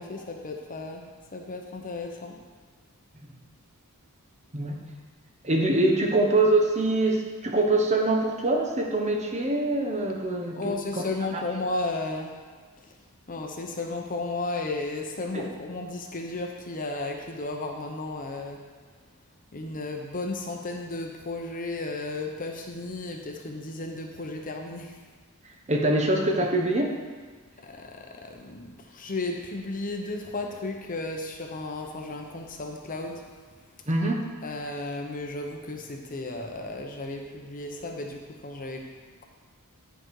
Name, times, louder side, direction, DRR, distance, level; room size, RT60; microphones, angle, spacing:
voice 1, 0.0-2.4 10.5-12.4 12.8-13.0 13.3-18.6 19.5-25.0 27.6-33.3 34.4-38.9, left 2 dB, 40° left, 2 dB, 0.9 m, -34 dB
voice 2, 5.4-10.7 11.3-11.4 15.3-15.4 25.7-26.9 33.9-34.3, right 2 dB, 30° right, 1 dB, 1.1 m, -24 dB
10.5 x 5.2 x 4.7 m, 1.5 s
head